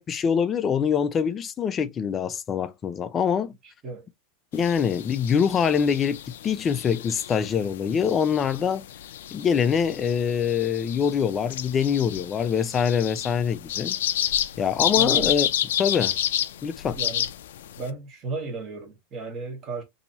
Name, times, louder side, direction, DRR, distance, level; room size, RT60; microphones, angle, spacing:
voice 1, 0.0-3.6 4.5-8.9 9.3-14.0 14.6-15.5 15.8-16.2 16.6-17.0, left 7 dB, 20° left, 0.3 m, -24 dB
voice 2, 3.6-4.1 14.9-15.3 16.9-17.3 17.8-19.8, right 4 dB, 25° right, 1.2 m, -34 dB
sound 1, 4.5-17.9, left 11 dB, 90° left, 0.3 m, -30 dB
2.9 x 2.7 x 3.9 m
supercardioid pair, 170°, 0 cm